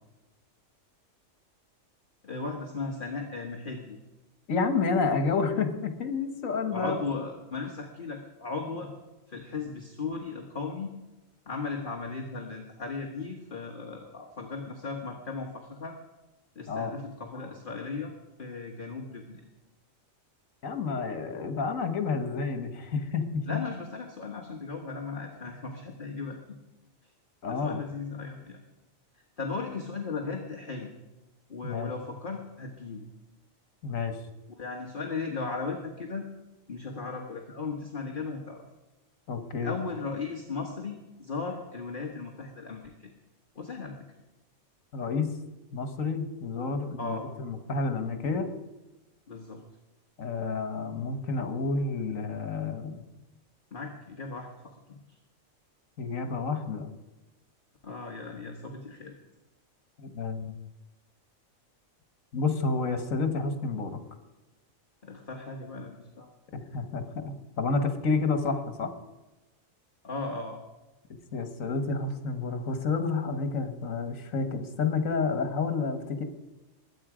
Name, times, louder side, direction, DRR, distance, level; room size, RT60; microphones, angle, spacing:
voice 1, 2.2-4.0 6.7-8.9 9.3-10.9 11.5-16.0 16.5-18.1 18.4-19.4 23.5-26.6 27.4-28.6 29.1-30.9 31.5-33.1 34.6-36.3 36.7-38.6 39.6-43.1 43.5-44.0 47.0-47.2 49.3-49.6 53.7-55.2 57.8-59.1 65.0-66.3 70.0-70.6, left 4 dB, 40° left, 1 dB, 1.5 m, -36 dB
voice 2, 4.5-7.0 16.7-16.9 20.6-23.6 27.4-27.8 31.6-31.9 33.8-34.2 39.3-39.7 44.9-45.3 45.7-48.5 50.2-53.0 56.0-56.9 60.0-60.5 62.3-64.0 66.5-68.9 71.3-76.2, left 4 dB, 75° left, 8 dB, 1.7 m, -30 dB
22.0 x 8.7 x 5.0 m, 1.1 s
omnidirectional pair, 1.4 m